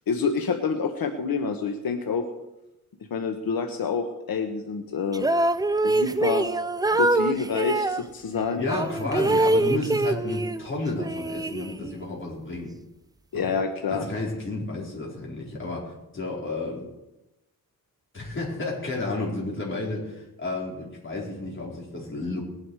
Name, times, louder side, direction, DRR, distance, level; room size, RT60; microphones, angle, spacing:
voice 1, 0.1-2.3 3.1-5.3 5.8-6.5 6.9-8.7 13.3-14.1, left 5 dB, 80° left, 5 dB, 1.2 m, -27 dB
sound 1, 5.1-8.0 8.7-10.7 11.0-12.1, right 2 dB, 10° right, 0.4 m, -24 dB
voice 2, 8.5-12.7 13.3-13.5 13.9-16.9 18.1-22.4, left 2 dB, 35° left, -4 dB, 4.6 m, -31 dB
20.0 x 10.5 x 4.8 m, 0.95 s
wide cardioid pair, 155°, 35 cm